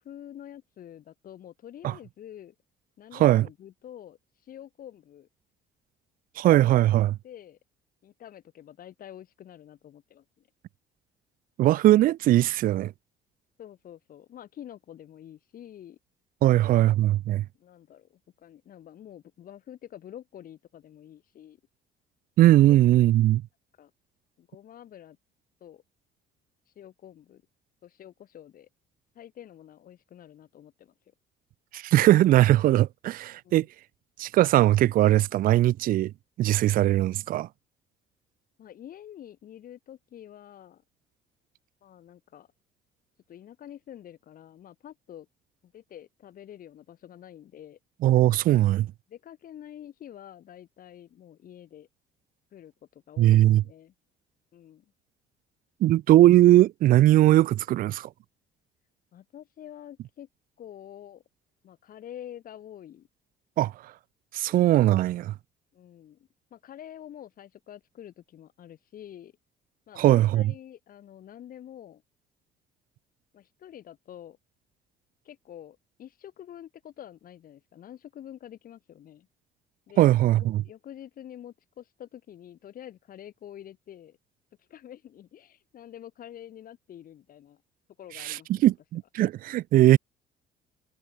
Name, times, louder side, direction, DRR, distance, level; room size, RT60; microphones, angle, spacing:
voice 1, 0.0-2.6 3.0-5.3 7.0-7.6 8.0-10.5 13.6-16.0 16.4-16.9 17.6-21.6 22.6-22.8 23.8-23.9 24.4-25.2 25.6-25.8 26.7-27.4 27.8-28.7 29.2-30.9 33.4-33.7 38.6-40.8 41.8-42.5 43.3-45.3 45.6-47.8 49.1-51.9 52.5-53.9 54.5-54.9 59.1-60.3 60.6-61.2 61.6-63.1 64.5-64.6 65.7-69.3 69.9-72.0 73.3-74.4 75.2-79.3 79.9-84.2 84.6-87.6 88.0-88.7, left 10 dB, 55° left, 5.2 m, -47 dB
voice 2, 6.4-7.2 11.6-12.9 16.4-17.4 22.4-23.4 31.7-33.7 34.2-36.1 36.4-37.5 48.0-48.9 53.2-53.6 55.8-58.1 63.6-63.7 64.3-65.3 70.0-70.4 80.0-80.6 88.2-90.0, right 14 dB, 55° right, 0.4 m, -20 dB
cardioid pair, 110°, 17 cm